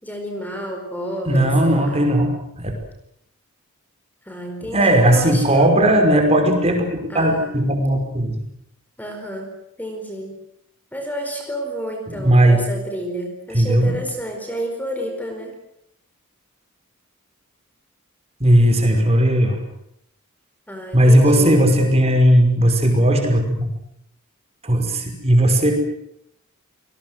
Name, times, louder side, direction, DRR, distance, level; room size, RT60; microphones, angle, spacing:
voice 1, 0.0-2.1 4.2-5.7 7.1-7.5 9.0-9.5 9.8-10.3 10.9-15.5 20.7-21.6, equal, 10° left, 4 dB, 4.7 m, -30 dB
voice 2, 1.3-2.3 2.6-2.7 4.6-8.4 12.1-12.6 13.5-14.0 18.4-19.6 20.9-23.7 24.6-25.7, right 1 dB, 30° right, 4 dB, 5.6 m, -16 dB
28.5 x 20.0 x 7.9 m, 0.77 s
head